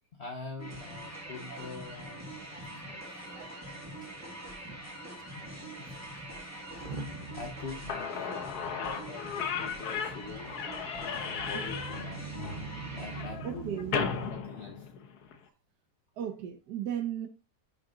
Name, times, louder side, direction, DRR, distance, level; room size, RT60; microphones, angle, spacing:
voice 1, 0.1-3.1 5.4-5.5 5.8-6.0 7.3-10.7 10.9-12.2 12.9-13.7 14.2-14.9, left 4 dB, 45° left, 1.3 m, -44 dB
sound 1, 0.6-13.2, right 1 dB, 10° right, 2.1 m, -44 dB
Motor vehicle (road) / Engine starting / Accelerating revving vroom, 4.0-4.1 4.3-4.6 5.2-5.3 6.6-14.3, right 3 dB, 35° right, 1.0 m, -44 dB
Slam / Squeak, 7.6-7.7 7.9-15.4, left 6 dB, 75° left, 1.4 m, -36 dB
voice 2, 13.4-14.0 16.2-17.3, right 10 dB, 85° right, 1.4 m, -36 dB
11.0 x 3.9 x 3.8 m
omnidirectional pair, 1.7 m